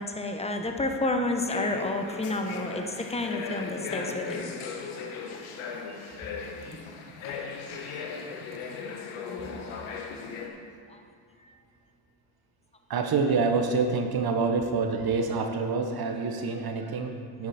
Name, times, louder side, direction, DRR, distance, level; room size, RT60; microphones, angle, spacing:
voice 1, 0.0-4.5 10.9-11.0, left 2 dB, 15° left, 5 dB, 1.1 m, -30 dB
sound 1, 1.5-10.5, left 5 dB, 75° left, 1.2 m, -37 dB
voice 2, 5.9-6.5 7.7-8.2 10.4-10.6 12.9-17.5, right 4 dB, 50° right, 5 dB, 1.1 m, -28 dB
9.6 x 9.3 x 4.3 m, 2.4 s
supercardioid pair, 70°, 49 cm